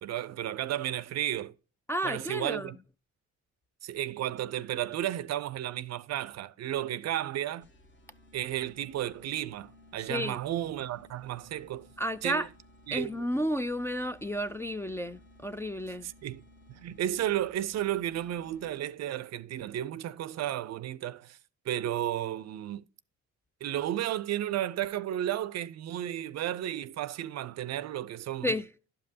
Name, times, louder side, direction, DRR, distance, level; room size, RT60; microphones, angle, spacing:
voice 1, 0.0-1.5 2.0-2.8 3.8-7.7 8.3-11.9 12.2-12.5 12.9-13.2 16.2-16.4 16.7-21.4 21.7-22.8 23.6-28.5, right 12 dB, 60° right, 0.5 m, -33 dB
voice 2, 1.9-2.7 10.1-10.4 12.0-12.5 12.9-16.1 28.4-28.7, equal, 10° left, 0.3 m, -32 dB
sound 1, 7.6-19.0, left 1 dB, 40° left, 1.1 m, -57 dB
11.5 x 5.4 x 2.7 m
cardioid pair, 90°, 30 cm